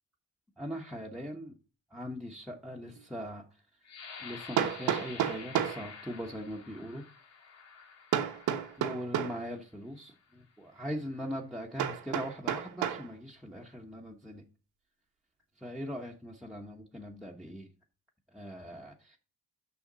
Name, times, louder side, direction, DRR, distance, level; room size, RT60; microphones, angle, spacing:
voice 1, 0.6-1.5 1.9-3.4 4.2-7.0 8.8-14.4 15.6-17.7 18.3-19.2, equal, ahead, -2 dB, 1.2 m, -41 dB
Hammer, 3.0-3.1 4.6-5.8 8.1-9.4 11.8-13.1, right 10 dB, 85° right, 1.1 m, -31 dB
sound 1, 3.8-9.5 10.2-10.3 10.8-11.2, left 5 dB, 60° left, 1.8 m, -49 dB
7.0 x 5.8 x 3.9 m, 0.36 s
cardioid pair, 90°, 30 cm